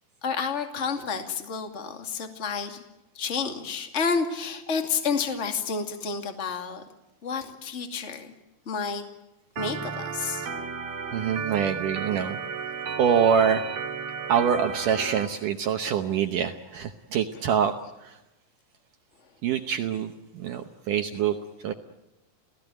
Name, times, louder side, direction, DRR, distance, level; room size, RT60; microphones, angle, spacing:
voice 1, 0.2-2.8 3.1-6.8 7.2-8.3 8.7-9.0 9.6-10.5 17.3-17.4, left 5 dB, 25° left, 5 dB, 2.0 m, -30 dB
Organ, 9.6-15.3, right 6 dB, 45° right, 2.8 m, -34 dB
voice 2, 11.1-12.4 13.0-13.6 14.3-17.7 19.4-21.4 21.6-21.7, right 8 dB, 70° right, 5 dB, 2.2 m, -25 dB
29.0 x 17.5 x 9.1 m, 0.98 s
omnidirectional pair, 4.6 m